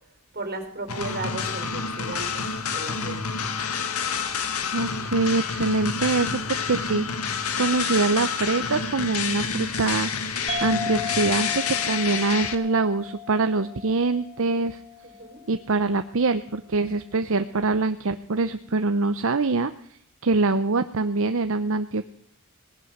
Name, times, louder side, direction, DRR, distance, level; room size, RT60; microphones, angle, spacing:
voice 1, 0.3-2.4 2.7-3.2 15.0-15.4, right 2 dB, 45° right, 6 dB, 3.9 m, -35 dB
sound 1, 0.9-12.5, left 6 dB, 85° left, 1.7 m, -28 dB
voice 2, 4.7-14.8 15.5-19.7 20.2-22.0, right 3 dB, 65° right, 10 dB, 0.7 m, -24 dB
sound 2, 10.5-15.4, left 5 dB, 25° right, 3.4 m, -35 dB
18.5 x 11.0 x 6.6 m, 0.68 s
head